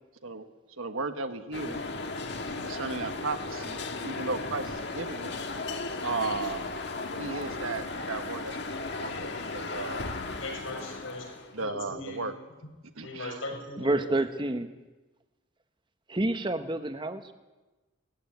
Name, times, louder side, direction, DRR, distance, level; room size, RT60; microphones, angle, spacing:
voice 1, 0.8-1.8 2.6-5.3 6.0-6.7 7.1-8.6 9.0-10.1 11.5-12.3 13.0-13.4, right 3 dB, 85° right, 7 dB, 1.4 m, -35 dB
sound 1, 1.5-11.6, left 3 dB, 55° left, 1.7 m, -36 dB
voice 2, 10.3-11.3 11.6-12.3 13.0-14.1, left 2 dB, 75° left, 2 dB, 6.4 m, -39 dB
voice 3, 13.8-14.7 16.1-17.3, right 2 dB, 25° right, 9 dB, 1.1 m, -28 dB
19.5 x 15.0 x 9.4 m, 1.2 s
head